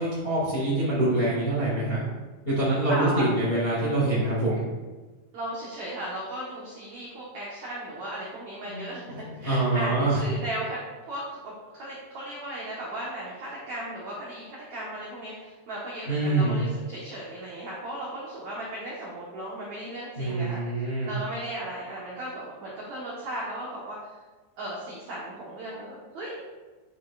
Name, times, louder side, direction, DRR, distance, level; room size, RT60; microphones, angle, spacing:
voice 1, 0.0-2.0 2.4-4.6 8.7-8.8 9.2-10.2 16.0-16.6 20.1-21.1, right 2 dB, 35° left, -8 dB, 0.9 m, -25 dB
voice 2, 2.9-3.3 5.3-10.8 11.1-20.6 21.0-24.0 24.6-26.5, right 1 dB, 85° right, -5 dB, 1.6 m, -36 dB
10.0 x 6.6 x 2.5 m, 1.3 s
omnidirectional pair, 5.3 m